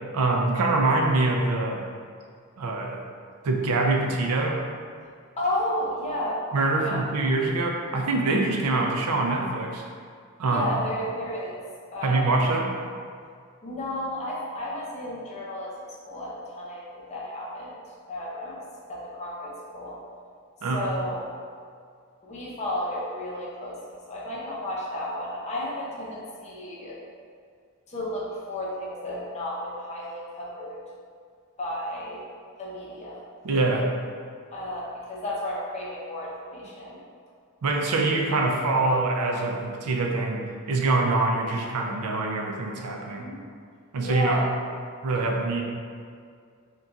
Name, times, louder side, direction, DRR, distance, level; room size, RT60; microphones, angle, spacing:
voice 1, 0.1-1.8 2.6-3.0 3.4-4.6 6.5-9.9 10.4-10.7 12.0-12.7 20.6-20.8 33.4-33.9 37.6-43.3 43.9-44.4 45.0-45.6, right 2 dB, 80° right, 1 dB, 0.4 m, -24 dB
voice 2, 5.4-6.4 6.8-7.0 10.5-11.6 11.9-12.4 13.6-17.8 18.1-18.6 18.9-20.0 20.7-21.3 22.2-27.0 27.9-30.8 31.6-32.2 32.6-33.2 34.5-37.0 43.2-43.4 44.0-44.5, left 1 dB, 30° left, -5 dB, 0.5 m, -32 dB
2.4 x 2.2 x 3.9 m, 2.2 s
head